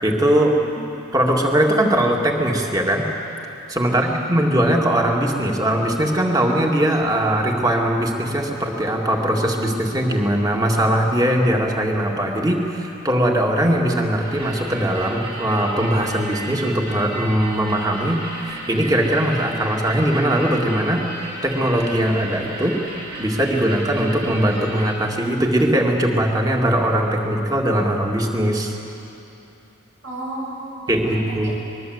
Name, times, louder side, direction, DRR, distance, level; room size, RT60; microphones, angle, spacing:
voice 1, 0.0-0.5 1.1-3.1 3.7-21.0 21.4-22.8 23.2-28.8 30.9-31.5, right 1 dB, 20° right, 0 dB, 2.2 m, -20 dB
voice 2, 3.9-4.3 30.0-31.5, right 1 dB, 70° right, -4 dB, 7.6 m, -33 dB
sound 1, 14.2-24.9, right 2 dB, 50° right, 6.6 m, -35 dB
24.5 x 21.5 x 8.1 m, 2.9 s
head